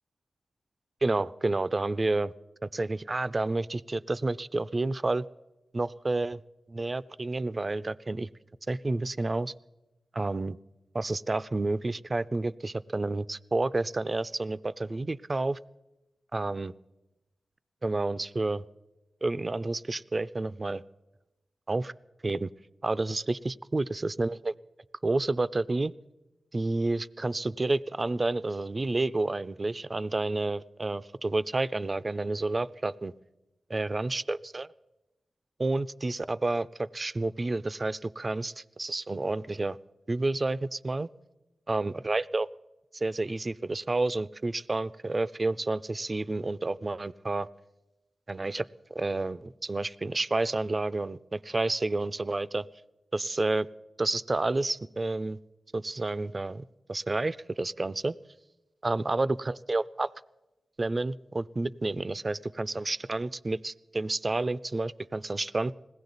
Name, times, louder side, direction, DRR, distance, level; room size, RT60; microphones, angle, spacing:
voice 1, 1.0-2.3 2.7-5.2 5.7-6.4 6.7-8.3 8.7-9.5 10.1-10.6 10.9-15.6 16.3-16.7 17.8-18.6 19.2-20.8 21.7-21.9 22.2-22.5 22.8-24.5 25.0-25.9 26.5-33.1 33.7-34.7 35.6-39.8 40.1-41.1 41.7-42.5 42.9-47.5 48.3-52.7 53.1-53.7 54.0-55.4 55.7-56.6 56.9-58.1 58.8-60.1 60.8-65.7, right 2 dB, 40° right, 16 dB, 0.4 m, -30 dB
20.5 x 16.5 x 4.0 m, 1.0 s
cardioid pair, 45°, 0 cm